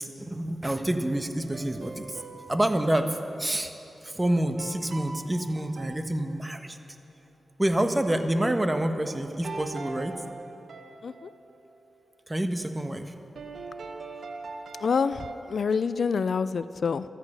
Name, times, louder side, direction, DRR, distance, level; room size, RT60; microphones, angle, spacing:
voice 1, 0.0-2.2 2.5-3.7 4.0-6.8 7.6-10.2 12.3-13.1, right 1 dB, 20° right, 7 dB, 1.3 m, -27 dB
sound 1, 1.4-3.0 4.6-6.8 9.4-11.5 13.4-15.3, right 3 dB, 75° right, 1.1 m, -42 dB
voice 2, 14.8-17.1, left 5 dB, 70° left, 14 dB, 0.4 m, -27 dB
14.0 x 14.0 x 6.8 m, 2.9 s
cardioid pair, 40°, 0 cm